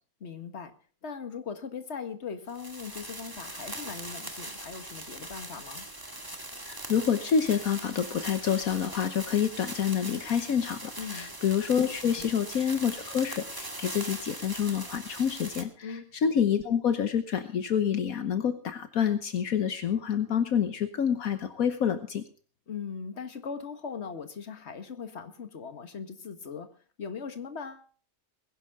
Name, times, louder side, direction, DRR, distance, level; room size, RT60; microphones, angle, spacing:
voice 1, 0.2-0.8 1.0-5.9 11.0-11.4 12.2-12.3 15.8-16.0 22.7-27.9, left 6 dB, 50° left, 8 dB, 1.9 m, -39 dB
sound 1, 2.5-15.6, right 1 dB, 15° right, 1.9 m, -41 dB
voice 2, 6.6-22.2, left 8 dB, 75° left, 9 dB, 1.5 m, -28 dB
21.5 x 11.0 x 3.7 m, 0.40 s
omnidirectional pair, 1.5 m